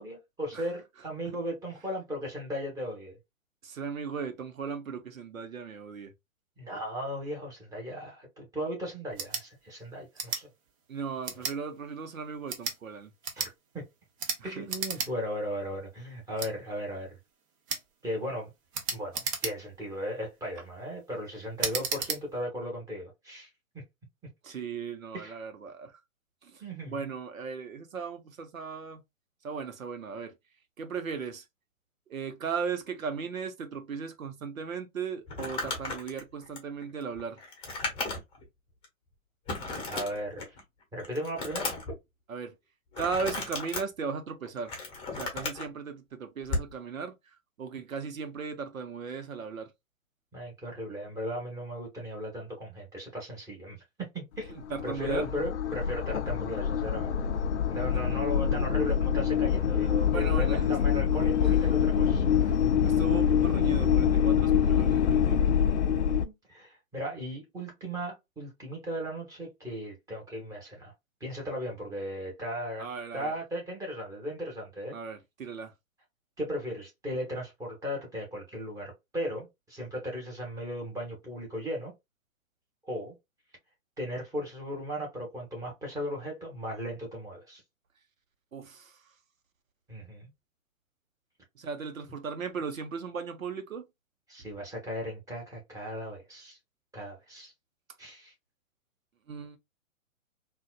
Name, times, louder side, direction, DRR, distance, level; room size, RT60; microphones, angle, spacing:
voice 1, 0.0-3.2 6.6-10.5 13.3-13.8 14.4-17.2 18.0-18.5 18.9-23.5 23.7-23.8 25.1-25.3 26.6-27.1 39.9-40.5 40.9-41.7 50.3-53.8 54.1-54.5 54.8-57.2 57.7-62.2 66.1-70.9 71.2-72.8 73.1-75.0 76.4-81.9 82.8-83.1 84.0-87.6 89.9-90.3 94.3-96.6 96.9-97.5 98.0-98.3, equal, 10° right, 1.4 m, -36 dB
voice 2, 3.6-6.1 10.9-13.1 14.4-14.7 24.4-26.0 26.4-29.0 29.4-30.4 30.8-31.4 32.1-37.4 42.3-42.5 43.0-44.7 45.2-47.1 47.6-49.7 54.5-55.3 58.4-58.7 60.1-60.8 61.4-61.7 62.0-62.1 62.4-65.4 72.8-73.4 74.9-75.7 88.5-89.0 91.5-93.9 99.3-99.6, right 5 dB, 75° right, 1.0 m, -37 dB
sound 1, 9.1-9.4 10.1-10.4 11.2-11.6 12.4-12.8 13.2-13.5 14.2-14.4 14.7-15.1 15.4-15.5 16.4-16.5 17.7-17.9 18.7-19.8 20.3-20.7 21.6-22.2, right 5 dB, 25° right, 0.6 m, -33 dB
Crumpling crinkling, 35.3-38.4 38.8-38.9 39.5-40.6 41.0-42.0 42.9-43.8 44.4-45.7 46.4-46.7, left 3 dB, 15° left, 0.9 m, -35 dB
sound 2, 54.3-66.3, left 8 dB, 60° left, 0.5 m, -25 dB
3.9 x 2.6 x 2.4 m
hypercardioid pair, 130°, 41 cm